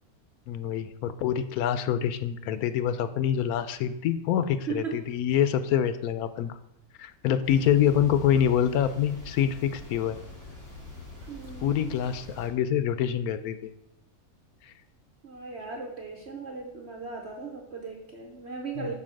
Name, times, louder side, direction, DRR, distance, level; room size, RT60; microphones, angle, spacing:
voice 1, 0.5-6.6 7.0-10.2 11.6-13.7 14.6-14.7 18.8-18.9, left 9 dB, 80° left, 11 dB, 1.1 m, -26 dB
voice 2, 4.7-5.0 8.0-8.4 11.3-12.0 15.2-18.9, right 5 dB, 50° right, 1 dB, 1.1 m, -38 dB
sound 1, 7.4-12.5, left 2 dB, 50° left, 3.0 m, -44 dB
6.1 x 4.1 x 6.3 m, 0.80 s
omnidirectional pair, 1.5 m